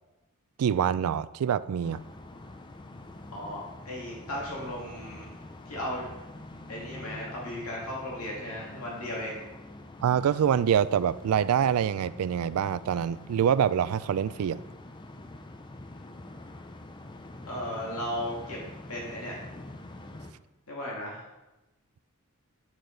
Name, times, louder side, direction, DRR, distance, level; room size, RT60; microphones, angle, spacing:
voice 1, 0.6-2.0 10.0-14.6, right 8 dB, 80° right, 17 dB, 0.3 m, -25 dB
sound 1, 1.8-20.3, left 2 dB, 20° left, 0.5 m, -46 dB
voice 2, 3.3-5.3 5.7-6.1 6.7-9.4 17.5-18.6 18.9-19.4 20.7-21.2, left 1 dB, 85° left, -4 dB, 2.2 m, -36 dB
8.9 x 6.4 x 3.9 m, 1.0 s
head